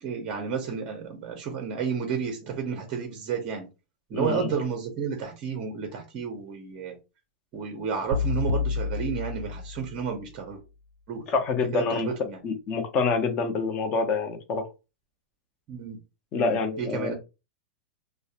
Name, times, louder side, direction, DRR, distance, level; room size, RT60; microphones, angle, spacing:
voice 1, 0.0-3.7 4.1-7.0 7.5-10.6 11.1-11.2 11.7-12.4 15.7-16.0 16.3-17.1, right 6 dB, 25° right, 3 dB, 0.5 m, -31 dB
voice 2, 4.1-4.5 11.3-12.1 12.4-14.7 16.3-17.1, left 4 dB, 25° left, 7 dB, 0.5 m, -26 dB
sound 1, 8.1-10.2, left 4 dB, 85° right, 0.4 m, -29 dB
2.4 x 2.0 x 2.7 m, 0.28 s
supercardioid pair, 170°, 5 cm